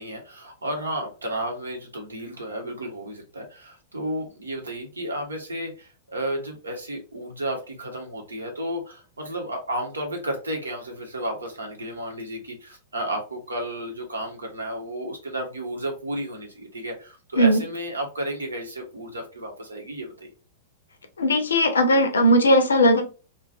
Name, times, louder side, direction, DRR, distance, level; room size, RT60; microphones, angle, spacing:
voice 1, 0.0-20.3, right 1 dB, 80° right, 2 dB, 0.8 m, -32 dB
voice 2, 21.2-23.0, equal, 70° left, 7 dB, 0.5 m, -18 dB
2.5 x 2.3 x 2.4 m, 0.34 s
figure-of-eight pair, 100°, 0 cm